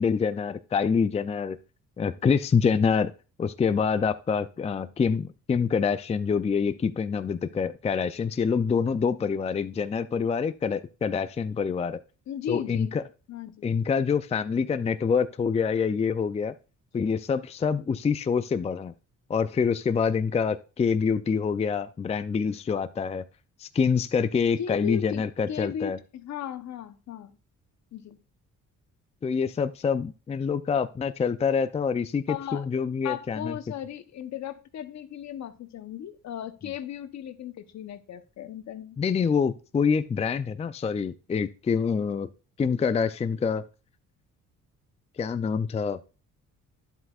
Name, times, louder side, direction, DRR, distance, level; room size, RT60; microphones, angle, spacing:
voice 1, 0.0-1.6 2.0-3.1 3.4-12.0 12.5-13.0 13.6-16.5 16.9-18.9 19.3-23.2 23.6-26.0 29.2-33.5 39.0-42.3 42.6-43.7 45.2-46.0, left 6 dB, 20° left, 0.4 m, -26 dB
voice 2, 12.3-13.0 13.3-13.6 24.6-27.3 27.9-28.2 32.3-32.7 33.0-39.0, left 10 dB, 65° left, 0.9 m, -36 dB
10.0 x 7.8 x 2.4 m
cardioid pair, 90°, 30 cm